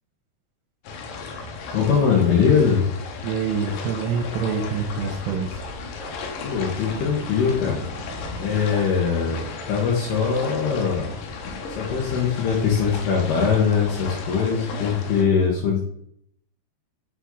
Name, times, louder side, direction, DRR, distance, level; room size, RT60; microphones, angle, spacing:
sound 1, 0.8-15.2, left 4 dB, 90° left, 3.3 m, -35 dB
voice 1, 1.7-2.8 6.4-7.8 8.4-9.4 9.7-11.1 11.7-15.8, left 6 dB, 70° left, -4 dB, 3.2 m, -21 dB
voice 2, 3.2-5.6, right 5 dB, 80° right, 4 dB, 2.8 m, -26 dB
sound 2, 5.3-10.1, right 3 dB, 65° right, 2.8 m, -43 dB
6.9 x 5.8 x 3.9 m, 0.69 s
omnidirectional pair, 5.1 m